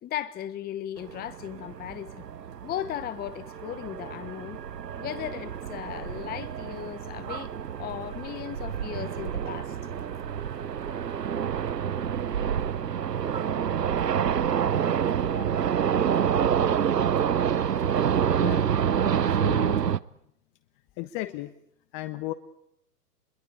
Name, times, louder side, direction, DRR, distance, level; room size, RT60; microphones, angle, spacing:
voice 1, 0.0-2.2 2.6-4.6 5.0-7.5 7.8-9.8 15.2-15.6, left 11 dB, 20° left, 1.2 m, -36 dB
sound 1, 1.0-20.0, right 8 dB, 85° right, 1.0 m, -28 dB
voice 2, 19.3-19.8 21.0-21.5 21.9-22.3, left 17 dB, 35° left, 1.3 m, -34 dB
27.0 x 22.5 x 8.5 m
figure-of-eight pair, 110°, 47 cm